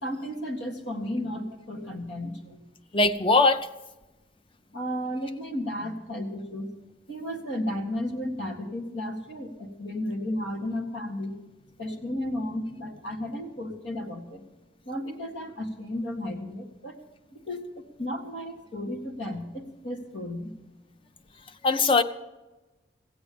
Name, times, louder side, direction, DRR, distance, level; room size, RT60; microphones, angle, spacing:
voice 1, 0.0-2.6 4.7-6.7 7.1-11.4 11.8-14.4 14.9-17.0 17.3-17.6 18.0-20.5, left 1 dB, 85° left, 3 dB, 1.9 m, -33 dB
voice 2, 2.9-3.6 21.6-22.0, left 3 dB, 30° left, 11 dB, 0.5 m, -20 dB
15.5 x 8.1 x 6.9 m, 1.1 s
head